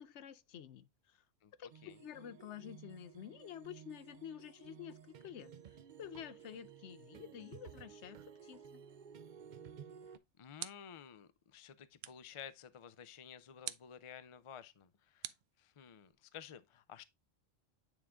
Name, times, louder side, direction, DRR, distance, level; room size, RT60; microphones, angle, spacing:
voice 1, 0.0-1.2 1.6-8.8, left 10 dB, 70° left, 0.9 m, -50 dB
sound 1, 1.7-10.2, right 8 dB, 55° right, 0.5 m, -55 dB
sound 2, 9.9-11.1 12.0-12.4 13.6-14.0 15.2-16.1, right 12 dB, 75° right, 0.9 m, -48 dB
voice 2, 10.1-17.0, left 8 dB, 50° left, 0.4 m, -53 dB
9.1 x 3.7 x 3.4 m
omnidirectional pair, 1.3 m